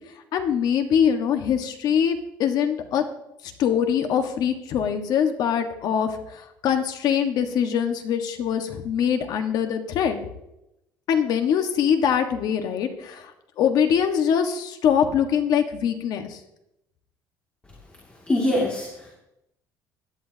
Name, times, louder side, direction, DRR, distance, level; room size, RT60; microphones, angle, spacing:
voice 1, 0.3-3.0 3.6-10.2 11.1-13.3 13.6-16.4, left 8 dB, 60° left, 6 dB, 1.5 m, -23 dB
voice 2, 18.3-19.1, left 1 dB, 15° left, -3 dB, 2.4 m, -23 dB
17.0 x 11.0 x 2.8 m, 0.85 s
cardioid pair, 145°, 8 cm